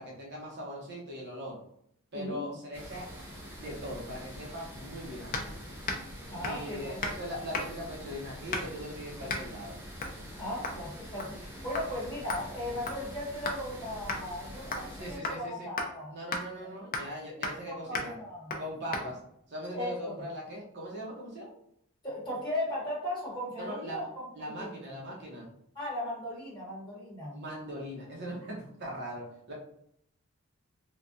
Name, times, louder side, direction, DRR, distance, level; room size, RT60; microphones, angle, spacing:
voice 1, 0.0-1.6 2.1-3.1 3.6-5.6 6.4-9.8 15.0-15.7 16.1-18.2 18.6-19.2 19.5-21.5 23.6-24.1 24.4-25.5 27.3-29.5, equal, 50° right, -2 dB, 0.8 m, -40 dB
voice 2, 2.1-2.4 6.3-7.0 10.4-16.1 17.7-18.6 19.7-20.1 22.0-24.7 25.7-27.4, left 1 dB, 20° left, -5 dB, 1.2 m, -37 dB
sound 1, 2.7-15.2, equal, 10° right, 0.6 m, -45 dB
sound 2, 5.3-5.5 5.8-6.1 6.4-6.7 7.0-7.2 7.5-7.9 8.5-8.8 9.3-9.5 10.0-10.2 10.6-10.8 11.2-11.5 11.7-11.9 12.3-13.6 14.1-14.2 14.7-14.9 15.2-15.4 15.8-15.9 16.3-16.4 16.9-17.1 17.4-17.6 17.9-18.1 18.5-18.6 18.9-19.1, left 3 dB, 40° left, 0.4 m, -35 dB
3.4 x 2.2 x 2.6 m, 0.71 s
head